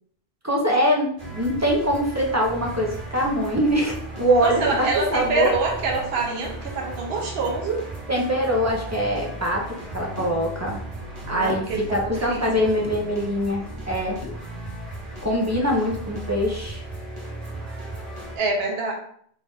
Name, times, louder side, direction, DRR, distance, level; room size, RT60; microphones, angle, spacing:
voice 1, 0.4-5.5 8.1-10.8 11.3-14.2 15.2-16.8, equal, 20° right, -2 dB, 0.5 m, -23 dB
sound 1, 1.2-18.4, right 2 dB, 40° right, 1.0 m, -36 dB
voice 2, 4.4-7.8 11.3-12.6 18.4-18.9, right 3 dB, 75° right, 0 dB, 1.0 m, -26 dB
sound 2, 10.2-10.4 11.5-11.7 12.8-13.0 14.2-14.4, left 4 dB, 60° left, 0.9 m, -37 dB
3.9 x 2.4 x 3.8 m, 0.62 s
omnidirectional pair, 1.1 m